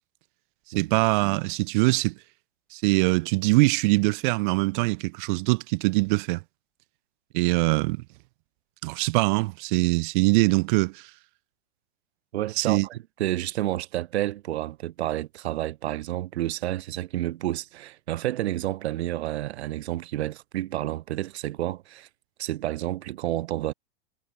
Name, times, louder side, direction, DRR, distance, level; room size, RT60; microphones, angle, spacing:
voice 1, 0.7-2.1 2.7-6.4 7.3-8.0 8.8-11.0 12.6-12.9, right 25 dB, 50° right, 0.8 m, -23 dB
voice 2, 12.3-22.1 22.4-23.7, right 14 dB, 75° right, 1.1 m, -30 dB
hypercardioid pair, 130°, 33 cm